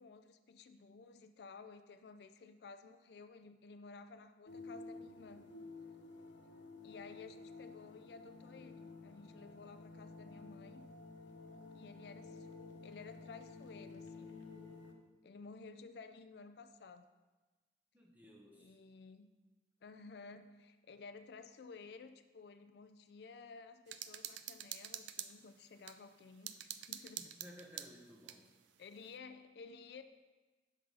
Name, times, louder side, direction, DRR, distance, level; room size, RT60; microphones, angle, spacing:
voice 1, 0.0-5.5 6.8-10.9 11.7-14.4 15.2-17.1 18.5-19.3 19.8-27.3 28.8-30.0, left 4 dB, 60° left, 10 dB, 0.4 m, -54 dB
sound 1, 4.5-14.9, left 3 dB, 80° left, 0.9 m, -52 dB
voice 2, 17.9-18.8 27.2-28.5, equal, 10° right, -1 dB, 1.0 m, -57 dB
sound 2, 23.9-26.0 26.5-28.4, right 11 dB, 80° right, 0.4 m, -46 dB
5.8 x 5.3 x 6.4 m, 1.2 s
head